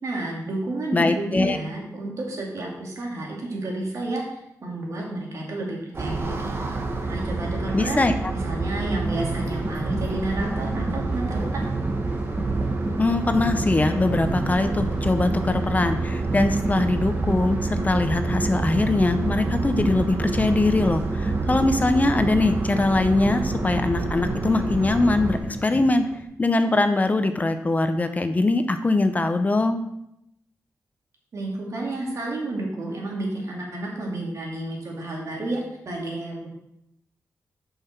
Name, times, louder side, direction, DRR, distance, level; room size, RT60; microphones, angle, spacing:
voice 1, 0.0-8.0 8.4-11.6 31.3-36.5, right 2 dB, 65° right, -2 dB, 2.5 m, -31 dB
voice 2, 0.9-1.6 7.7-8.3 13.0-26.0 26.4-29.8, left 2 dB, 25° left, 8 dB, 0.7 m, -22 dB
sound 1, 5.9-25.4, right 3 dB, 40° right, 1.2 m, -28 dB
sound 2, 9.1-26.2, right 1 dB, 20° right, 1.2 m, -34 dB
6.9 x 5.7 x 5.9 m, 0.80 s
wide cardioid pair, 95°, 6 cm